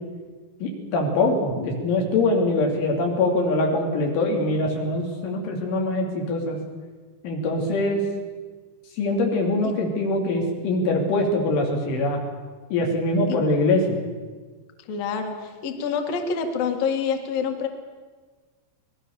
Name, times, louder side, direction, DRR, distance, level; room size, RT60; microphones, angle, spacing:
voice 1, 0.6-6.6 7.2-8.0 9.0-12.2 12.7-14.0, left 2 dB, 90° left, 1 dB, 6.0 m, -23 dB
voice 2, 14.9-17.7, left 6 dB, 55° left, 5 dB, 3.1 m, -27 dB
26.0 x 20.0 x 6.9 m, 1.4 s
omnidirectional pair, 5.4 m